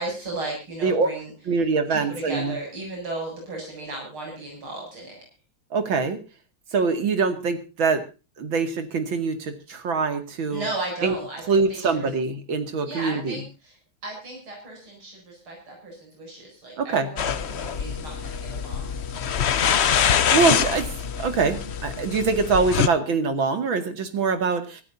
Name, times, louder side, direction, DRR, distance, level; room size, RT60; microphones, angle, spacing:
voice 1, 0.0-1.3 1.9-5.2 10.5-12.1 12.8-13.7 14.0-18.9, right 2 dB, 90° right, 0 dB, 8.7 m, -35 dB
voice 2, 1.5-2.6 5.7-6.2 6.7-8.0 8.4-10.7 11.0-11.1 11.5-13.4 16.8-17.1 20.3-20.9 21.2-24.8, right 4 dB, 70° right, 8 dB, 3.0 m, -24 dB
sound 1, 17.2-22.9, left 8 dB, 70° left, 0.6 m, -24 dB
24.5 x 14.0 x 2.7 m, 0.32 s
omnidirectional pair, 2.3 m